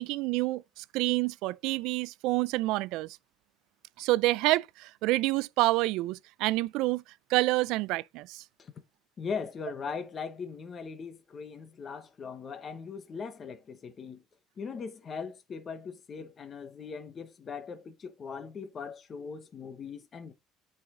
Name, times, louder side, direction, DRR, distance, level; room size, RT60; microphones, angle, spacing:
voice 1, 0.0-3.2 4.0-7.0 7.3-8.4, right 19 dB, 65° right, 0.3 m, -28 dB
voice 2, 9.2-14.2 14.6-20.3, left 5 dB, 25° left, 0.9 m, -40 dB
8.7 x 4.8 x 3.7 m
cardioid pair, 175°, 0 cm